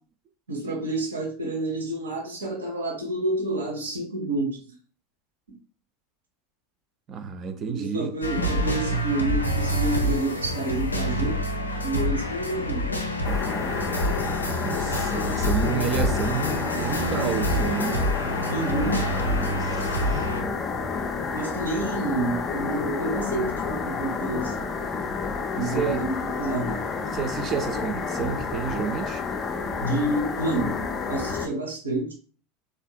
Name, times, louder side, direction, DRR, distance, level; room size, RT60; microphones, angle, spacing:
voice 1, 0.5-4.6 7.7-11.4 11.8-12.9 18.5-19.0 21.3-24.7 25.5-26.9 29.8-30.8 31.1-32.1, right 2 dB, 80° right, 0.8 m, -29 dB
voice 2, 7.1-8.1 14.6-18.0 19.4-20.3 25.6-26.0 27.1-29.2, right 6 dB, 35° right, 0.5 m, -30 dB
sound 1, 8.2-20.4, equal, 90° left, 0.4 m, -27 dB
sound 2, 13.2-31.5, left 4 dB, 30° left, 0.4 m, -30 dB
3.4 x 2.5 x 2.2 m
figure-of-eight pair, 80°, 0 cm